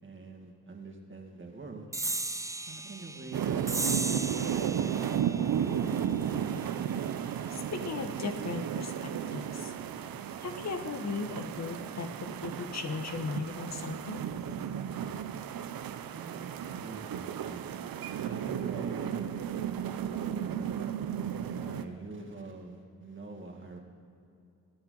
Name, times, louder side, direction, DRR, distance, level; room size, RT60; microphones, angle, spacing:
voice 1, 0.0-1.9 2.7-3.6 4.4-5.8 16.1-17.7 18.2-19.3 20.2-20.9 21.3-23.8, right 3 dB, 35° right, 1 dB, 2.1 m, -45 dB
sound 1, 1.9-8.8, right 2 dB, 10° right, 0.4 m, -38 dB
sound 2, 3.3-21.8, right 9 dB, 80° right, 0.7 m, -34 dB
voice 2, 7.5-9.7 10.4-14.2, left 4 dB, 50° left, 7 dB, 1.0 m, -37 dB
24.5 x 8.7 x 3.9 m, 2.5 s
wide cardioid pair, 115°, 34 cm